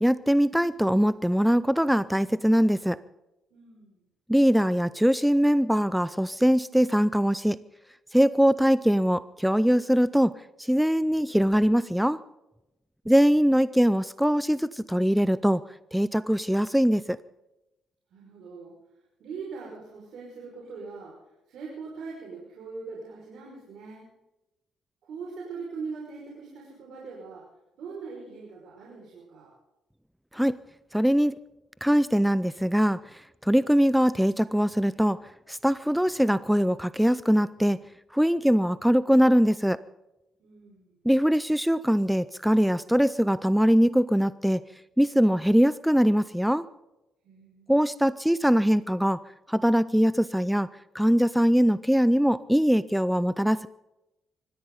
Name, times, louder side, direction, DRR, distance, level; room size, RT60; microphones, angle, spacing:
voice 1, 0.0-3.0 4.3-7.6 8.1-12.2 13.1-15.6 15.9-17.2 30.3-30.6 30.9-31.3 31.8-35.2 35.5-37.8 38.1-39.8 41.0-44.6 45.0-46.7 47.7-49.2 49.5-50.7 50.9-53.7, equal, ahead, 16 dB, 0.5 m, -22 dB
voice 2, 3.5-4.0 18.1-18.8 19.2-21.2 21.5-24.1 25.0-27.4 27.8-29.5 40.4-41.0 47.2-47.7, right 4 dB, 75° right, -3 dB, 5.5 m, -41 dB
25.0 x 14.5 x 3.9 m, 0.96 s
cardioid pair, 90°, 0 cm